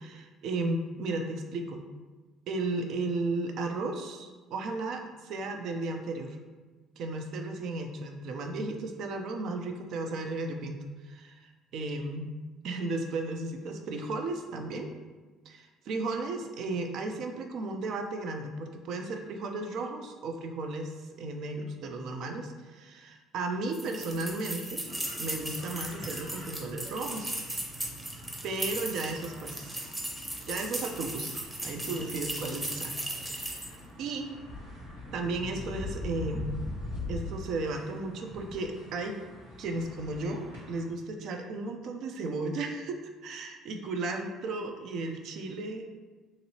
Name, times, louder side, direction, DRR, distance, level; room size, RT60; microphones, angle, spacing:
voice 1, 0.0-1.8 2.5-6.4 7.0-10.8 11.0-12.3 12.6-14.9 15.5-24.8 25.2-27.3 28.4-29.8 30.5-33.0 33.2-34.4 35.1-36.6 37.1-39.2 39.6-45.9, right 2 dB, 60° right, 4 dB, 0.4 m, -34 dB
sound 1, 23.7-33.8, right 1 dB, 15° right, 0.7 m, -37 dB
sound 2, 24.8-40.9, left 1 dB, 90° right, 1.1 m, -43 dB
2.9 x 2.6 x 2.8 m, 1.3 s
hypercardioid pair, 55°, 0 cm